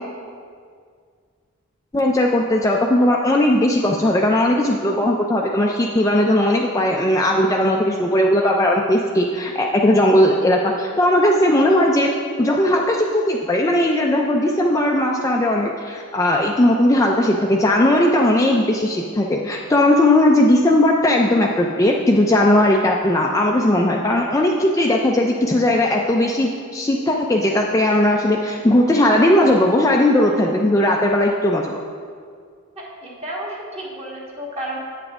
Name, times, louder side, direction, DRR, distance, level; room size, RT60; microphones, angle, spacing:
voice 1, 1.9-12.1 12.4-31.8, left 1 dB, 15° left, 0 dB, 0.3 m, -18 dB
voice 2, 32.8-34.8, right 1 dB, 30° right, -4 dB, 1.5 m, -32 dB
8.8 x 7.1 x 3.6 m, 2.1 s
head